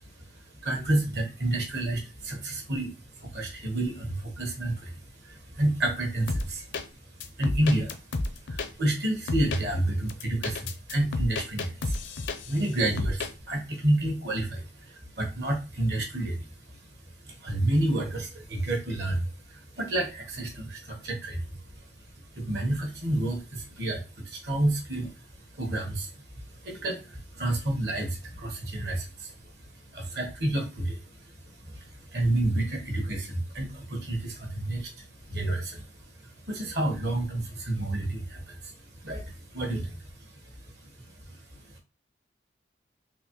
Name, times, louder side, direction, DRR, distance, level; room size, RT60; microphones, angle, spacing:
voice 1, 0.6-6.7 7.4-8.0 8.2-12.0 12.4-16.5 17.2-21.5 22.3-25.1 25.5-29.5 29.9-35.9 36.2-38.7 39.0-40.3 40.6-40.7 41.0-41.4, right 1 dB, 60° right, 2 dB, 1.3 m, -30 dB
sound 1, 6.3-6.8 7.2-8.7 9.3-9.6 10.1-12.7 13.0-13.3, left 2 dB, 80° left, 0.6 m, -31 dB
4.0 x 2.8 x 3.0 m, 0.30 s
head